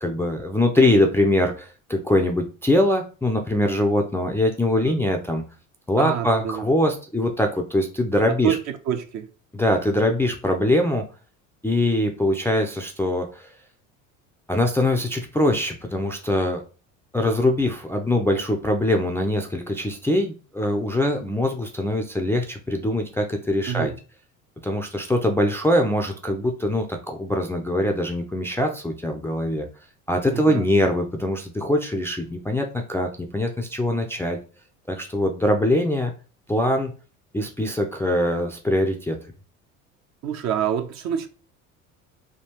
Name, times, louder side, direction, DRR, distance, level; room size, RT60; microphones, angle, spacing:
voice 1, 0.0-5.4 5.9-8.6 9.5-11.0 11.6-13.5 14.5-16.6 17.1-23.9 24.6-29.7 30.1-34.4 34.9-36.1 36.5-36.9 37.3-39.2, left 1 dB, 5° left, 0.4 m, -22 dB
voice 2, 6.0-6.6 8.3-9.3 23.7-23.9 30.3-30.6 40.2-41.3, right 9 dB, 45° right, 0.6 m, -27 dB
3.6 x 2.3 x 2.9 m
hypercardioid pair, 65°, 41 cm